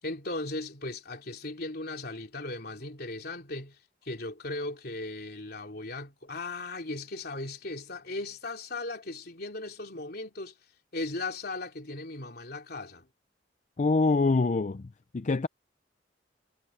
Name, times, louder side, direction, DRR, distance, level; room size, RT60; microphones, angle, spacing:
voice 1, 0.0-10.6 10.9-13.1, left 2 dB, 55° left, 3.5 m, -37 dB
voice 2, 13.8-15.5, left 3 dB, 40° left, 0.5 m, -25 dB
head